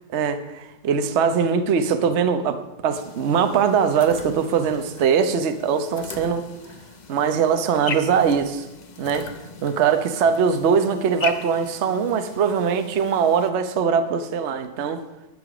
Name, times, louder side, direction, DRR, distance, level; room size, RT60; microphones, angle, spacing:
voice 1, 0.1-6.5 7.1-8.7 9.0-9.3 9.6-15.1, right 6 dB, 50° right, 8 dB, 0.9 m, -21 dB
sound 1, 2.9-13.5, left 5 dB, 70° left, 0.4 m, -39 dB
20.0 x 6.8 x 4.9 m, 0.98 s
omnidirectional pair, 1.9 m